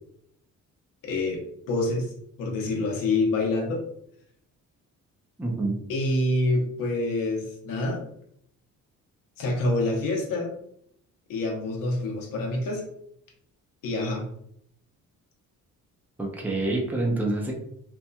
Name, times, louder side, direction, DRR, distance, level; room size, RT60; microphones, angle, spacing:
voice 1, 1.0-1.4 1.7-2.1 2.4-3.8 5.9-8.0 9.4-10.5 11.3-12.8 13.8-14.2, left 2 dB, 80° left, 0 dB, 0.8 m, -26 dB
voice 2, 5.4-5.8 16.2-17.5, right 2 dB, 5° right, -1 dB, 0.5 m, -27 dB
2.8 x 2.5 x 2.2 m, 0.69 s
cardioid pair, 130°, 33 cm